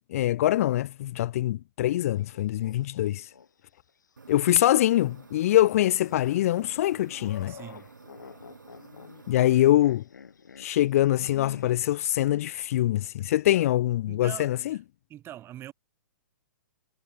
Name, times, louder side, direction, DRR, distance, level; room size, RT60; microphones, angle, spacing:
voice 1, 0.1-3.3 4.3-7.5 9.3-10.0 10.6-14.8, left 14 dB, 50° left, 0.5 m, -24 dB
sound 1, 1.9-3.5 3.9-4.0 5.0-11.8, left 6 dB, 75° left, 3.4 m, -48 dB
sound 2, 4.2-9.5, right 4 dB, 85° right, 3.6 m, -51 dB
voice 2, 7.5-7.9 14.1-14.8 15.1-15.7, right 12 dB, 25° right, 6.7 m, -43 dB
hypercardioid pair, 120°, 10 cm